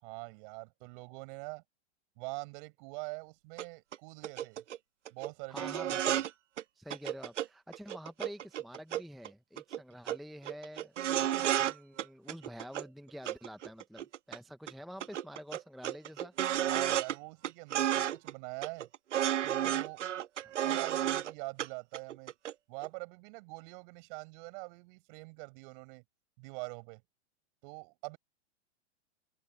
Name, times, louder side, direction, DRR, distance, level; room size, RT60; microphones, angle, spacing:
voice 1, 0.0-1.6 2.2-4.6 5.1-5.7 16.6-18.9 19.4-20.0 20.6-22.3 22.7-26.0 26.4-27.0 27.6-28.2, right 32 dB, 45° right, 6.6 m, -44 dB
sound 1, 3.6-3.7 3.9-4.0 4.2-4.8 5.1-5.3 5.6-6.3 6.6-6.7 6.9-7.5 7.7-9.3 9.6-9.8 10.1-10.2 10.5-11.7 12.0-12.9 13.3-14.4 14.7-14.8 15.0-17.2 17.4-18.3 18.6-21.3 21.6-21.7 21.9-22.5 22.8-22.9, right 11 dB, 90° right, 1.2 m, -32 dB
voice 2, 5.5-6.2 6.8-16.3 20.4-20.5, equal, ahead, 0.5 m, -48 dB
open air
hypercardioid pair, 135°, 35 cm